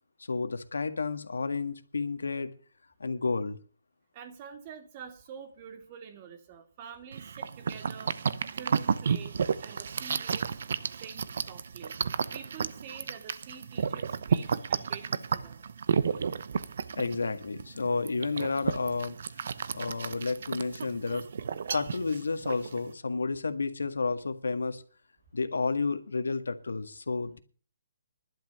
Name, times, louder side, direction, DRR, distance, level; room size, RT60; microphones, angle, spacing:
voice 1, 0.3-2.5 3.0-3.6 17.0-19.2 19.7-21.3 21.7-24.8 25.3-27.4, left 4 dB, 90° left, 10 dB, 1.8 m, -31 dB
voice 2, 4.1-8.2 8.5-10.6 10.9-11.9 12.3-15.6, right 7 dB, 35° right, 8 dB, 2.5 m, -47 dB
sound 1, 7.1-22.9, right 6 dB, 65° right, 0.9 m, -32 dB
11.5 x 8.1 x 7.9 m, 0.40 s
hypercardioid pair, 145°, 0 cm